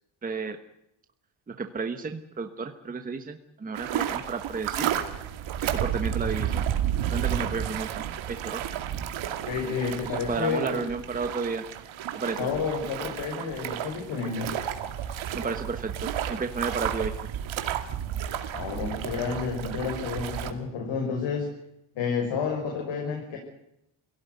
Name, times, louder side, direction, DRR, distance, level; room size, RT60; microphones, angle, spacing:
voice 1, 0.2-0.6 1.5-4.9 5.6-6.6 7.1-8.6 10.1-11.6 12.1-12.5 15.3-17.1, right 4 dB, 15° right, 6 dB, 1.2 m, -32 dB
sound 1, 3.7-20.5, right 10 dB, 70° right, 2.5 m, -32 dB
voice 2, 9.4-10.8 12.4-14.5 18.5-21.5 21.9-23.4, left 5 dB, 65° left, 2 dB, 5.8 m, -30 dB
25.5 x 17.0 x 9.4 m, 0.81 s
cardioid pair, 180°, 48 cm